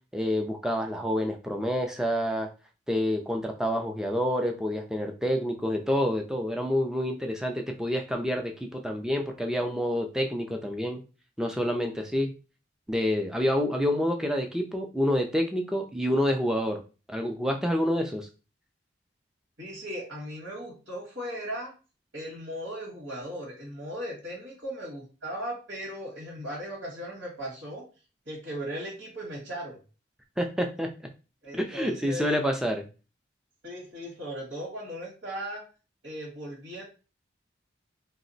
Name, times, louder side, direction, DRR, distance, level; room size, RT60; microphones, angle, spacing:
voice 1, 0.1-2.5 2.9-11.0 11.4-12.3 12.9-16.8 17.1-18.3 30.4-30.9 31.5-32.8, equal, 5° right, 3 dB, 0.4 m, -28 dB
voice 2, 19.6-21.7 22.1-27.8 28.2-29.8 31.4-32.3 33.6-35.6 36.0-36.8, equal, 85° right, -6 dB, 1.6 m, -37 dB
2.8 x 2.1 x 3.9 m, 0.33 s
head